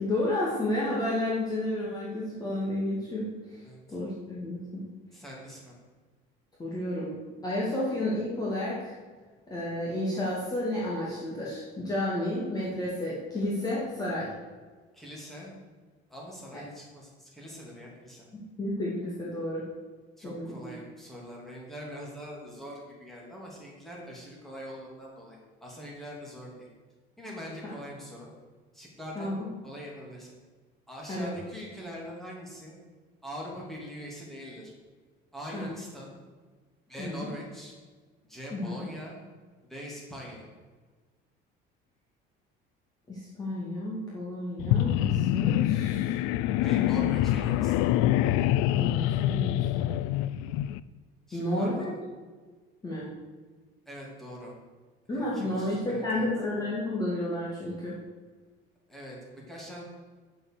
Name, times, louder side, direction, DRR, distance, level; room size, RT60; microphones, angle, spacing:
voice 1, 0.0-3.6 3.9-4.6 6.6-7.1 7.4-9.0 9.5-14.3 16.5-16.6 18.6-19.6 20.2-20.7 29.2-29.5 31.1-31.3 35.5-35.6 37.0-37.3 38.5-38.8 43.1-46.2 46.8-47.1 48.7-49.9 51.3-51.9 52.8-53.1 55.1-57.9, left 1 dB, 20° left, -6 dB, 2.2 m, -31 dB
voice 2, 5.1-5.7 14.9-15.6 16.1-18.3 20.2-26.7 27.2-28.3 28.7-30.3 30.9-32.7 33.2-34.7 35.3-36.2 36.9-37.7 38.3-39.2 39.7-40.5 46.6-47.9 51.3-52.0 53.9-54.5 55.2-56.3 58.9-59.8, equal, ahead, -4 dB, 2.8 m, -43 dB
sound 1, 44.6-50.8, left 13 dB, 90° left, 0.5 m, -25 dB
9.1 x 7.6 x 6.6 m, 1.4 s
cardioid pair, 160°, 21 cm